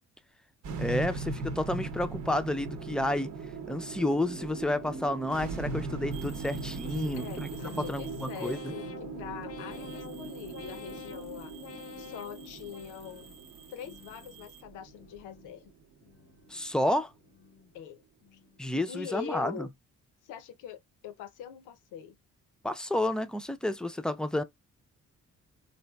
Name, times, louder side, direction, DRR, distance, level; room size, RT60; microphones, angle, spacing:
sound 1, 0.6-17.0, right 4 dB, 70° right, 0.8 m, -39 dB
voice 1, 0.8-3.3 3.7-7.5 7.9-8.7 16.5-17.1 18.6-19.7 22.6-24.4, left 1 dB, 5° left, 0.4 m, -30 dB
sound 2, 6.1-8.9 9.4-14.6, right 7 dB, 20° right, 0.9 m, -53 dB
voice 2, 6.8-13.3 13.7-15.7 17.7-18.0 18.3-18.4 18.9-19.7 20.2-22.2, left 9 dB, 90° left, 0.7 m, -44 dB
sound 3, 7.6-13.4 13.8-14.5 14.9-15.6 16.0-16.7 17.1-17.7 18.2-18.7, left 6 dB, 55° left, 0.6 m, -48 dB
4.2 x 2.4 x 2.3 m
cardioid pair, 90°, 30 cm